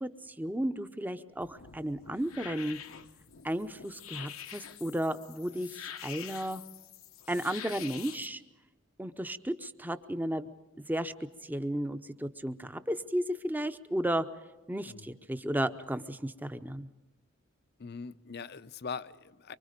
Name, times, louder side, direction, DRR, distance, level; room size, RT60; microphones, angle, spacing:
voice 1, 0.0-2.8 3.4-6.6 7.3-8.4 9.0-10.5 10.9-11.1 11.4-14.3 14.7-16.9, right 1 dB, 10° right, 10 dB, 0.7 m, -34 dB
sound 1, 1.4-8.3, left 9 dB, 85° left, 1.1 m, -46 dB
voice 2, 17.8-19.5, left 5 dB, 50° left, 15 dB, 0.6 m, -41 dB
25.0 x 24.5 x 5.2 m, 1.1 s
head